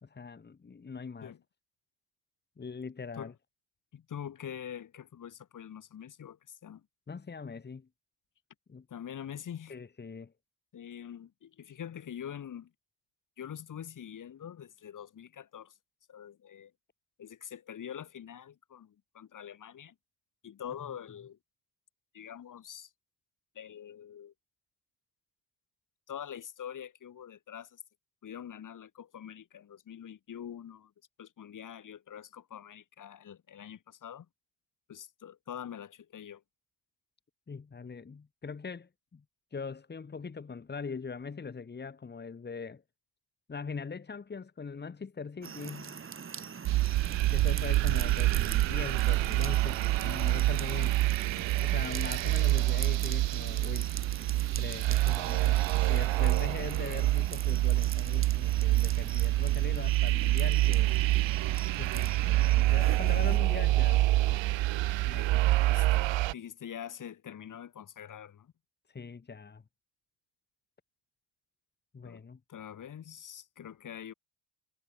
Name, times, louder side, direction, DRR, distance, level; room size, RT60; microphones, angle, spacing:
voice 1, 0.0-1.3 2.6-3.3 7.1-7.9 8.7-8.9 9.7-10.3 20.8-20.9 37.5-39.2 39.5-42.8 43.5-46.0 47.3-51.0 51.6-53.9 54.5-55.6 55.9-60.9 61.7-64.0 64.3-64.5 65.0-65.4 65.9-66.1 68.9-69.6 71.9-72.4, left 5 dB, 20° left, 4.4 m, -41 dB
voice 2, 3.9-6.9 8.9-9.8 10.7-12.7 13.4-15.8 16.1-16.7 17.2-19.9 20.4-21.4 22.1-22.9 23.5-24.3 26.1-27.8 28.2-30.9 31.2-34.3 34.9-36.4 55.4-55.6 65.7-68.5 72.0-74.1, left 9 dB, 40° left, 6.5 m, -45 dB
sound 1, 45.4-63.4, right 6 dB, 25° right, 6.4 m, -43 dB
sound 2, 46.7-66.3, right 17 dB, 65° right, 1.5 m, -27 dB
cardioid pair, 160°, 48 cm